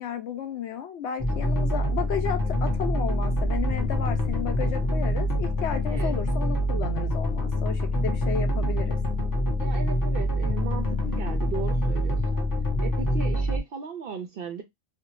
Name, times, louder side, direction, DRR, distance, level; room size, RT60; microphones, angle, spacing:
voice 1, 0.0-9.0, left 8 dB, 70° left, 0.8 m, -33 dB
sound 1, 1.2-13.6, left 1 dB, 30° left, 0.3 m, -25 dB
sound 2, 3.2-6.3, right 1 dB, 85° right, 1.0 m, -37 dB
voice 2, 9.6-12.5 12.8-14.6, right 6 dB, 65° right, 0.6 m, -37 dB
2.6 x 2.1 x 2.9 m
omnidirectional pair, 1.3 m